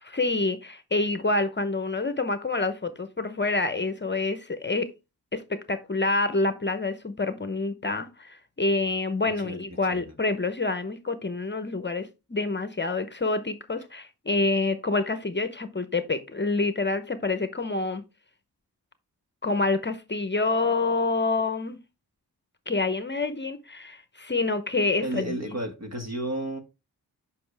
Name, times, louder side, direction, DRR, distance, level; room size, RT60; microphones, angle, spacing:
voice 1, 0.0-4.9 5.3-18.0 19.4-21.8 22.7-25.6, left 3 dB, 30° left, 0.8 m, -27 dB
voice 2, 25.0-26.6, right 1 dB, 40° right, 1.6 m, -32 dB
7.7 x 5.6 x 3.4 m
wide cardioid pair, 95°, 38 cm